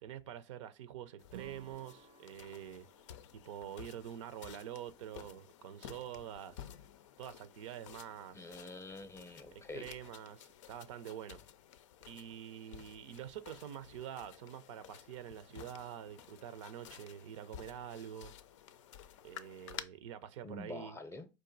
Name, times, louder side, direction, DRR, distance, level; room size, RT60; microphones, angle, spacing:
voice 1, 0.0-2.9 3.3-6.7 7.2-8.5 9.5-11.4 12.1-18.3 19.2-21.0, right 10 dB, 75° right, 0.6 m, -46 dB
sound 1, 1.2-19.8, left 10 dB, 80° left, 0.5 m, -53 dB
Acoustic guitar / Strum, 1.3-4.6, right 11 dB, 30° right, 0.5 m, -58 dB
voice 2, 8.3-9.9 20.4-21.3, left 2 dB, 15° left, 0.6 m, -46 dB
4.7 x 2.6 x 3.9 m
hypercardioid pair, 95°, 16 cm